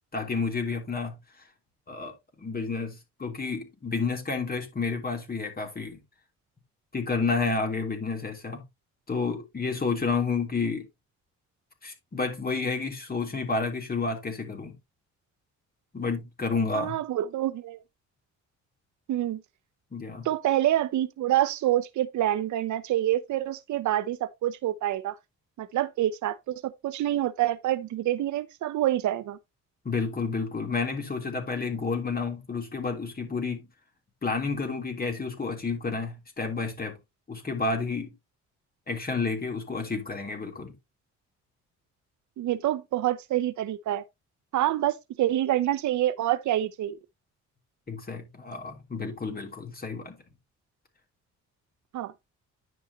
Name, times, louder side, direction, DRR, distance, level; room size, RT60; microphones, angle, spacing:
voice 1, 0.1-1.1 1.9-2.1 2.4-6.0 6.9-8.6 9.1-10.8 11.8-14.8 15.9-16.9 19.9-20.3 29.8-33.7 34.2-37.0 37.3-38.1 38.9-40.7 47.9-50.2, left 4 dB, 30° left, 3.2 m, -30 dB
voice 2, 16.7-17.8 19.1-19.4 20.2-25.2 25.6-29.4 42.4-44.0 44.5-47.0 51.9-52.1, right 13 dB, 70° right, 0.7 m, -27 dB
9.8 x 6.2 x 2.8 m
cardioid pair, 90°, 30 cm